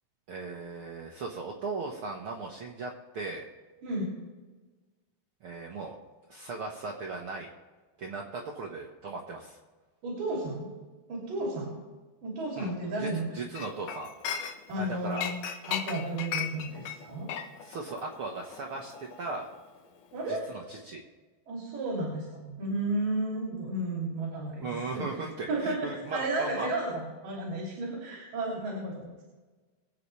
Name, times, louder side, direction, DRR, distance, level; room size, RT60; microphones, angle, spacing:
voice 1, 0.3-3.4 5.4-5.9 6.3-7.5 8.0-9.6 12.6-12.7 13.0-13.1 13.3-14.1 14.7-15.2 17.6-19.5 20.3-21.0 24.6-26.7, right 3 dB, 85° right, -1 dB, 1.2 m, -37 dB
voice 2, 10.0-10.7 11.1-11.8 12.2-13.3 14.7-15.4 15.7-17.3 20.1-20.5 21.5-25.1 25.5-29.2, right 2 dB, 65° right, -3 dB, 4.4 m, -33 dB
Chink clink, 13.6-14.8 15.2-19.8 20.1-20.3, left 8 dB, 70° left, 2.0 m, -37 dB
24.0 x 8.5 x 3.2 m, 1.3 s
omnidirectional pair, 4.3 m